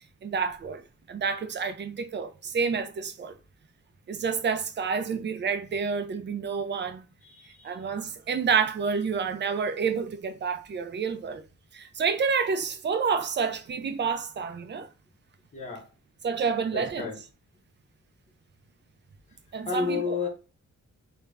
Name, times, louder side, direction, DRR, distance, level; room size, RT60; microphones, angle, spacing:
voice 1, 0.2-0.8 1.1-3.4 4.1-7.1 7.6-11.4 11.7-14.9 16.2-17.1 19.5-20.2, right 5 dB, 35° right, 0.4 m, -29 dB
voice 2, 7.2-7.9 15.5-15.9 16.7-17.2 19.6-20.3, left 5 dB, 25° left, 0.7 m, -32 dB
2.4 x 2.1 x 3.2 m
wide cardioid pair, 120°, 31 cm